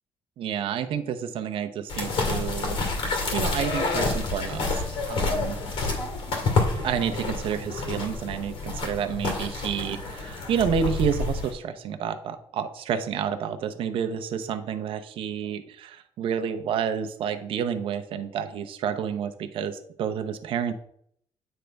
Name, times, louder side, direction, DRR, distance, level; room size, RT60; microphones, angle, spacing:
voice 1, 0.4-2.8 3.3-5.6 6.8-20.7, right 7 dB, 65° right, 7 dB, 0.8 m, -29 dB
sound 1, 1.9-11.5, left 3 dB, 70° left, 2.0 m, -28 dB
9.2 x 3.4 x 5.2 m, 0.66 s
cardioid pair, 165°, 10 cm